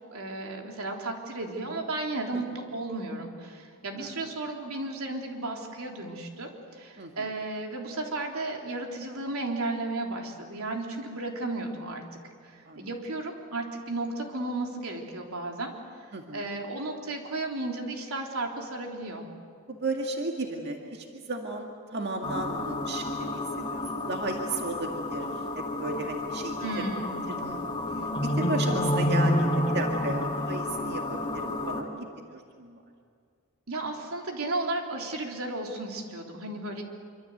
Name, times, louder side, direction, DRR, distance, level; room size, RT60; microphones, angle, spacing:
voice 1, 0.1-12.0 12.4-15.7 16.3-19.2 26.6-27.1 33.7-36.8, right 2 dB, 90° right, 1 dB, 3.6 m, -34 dB
voice 2, 3.9-4.3 7.0-7.3 12.7-12.9 16.1-16.4 19.7-26.6 27.3-27.6 28.0-32.8, right 2 dB, 50° right, 2 dB, 2.0 m, -35 dB
sound 1, 22.2-31.8, left 1 dB, 20° left, 2.4 m, -30 dB
26.0 x 25.0 x 8.1 m, 2.1 s
head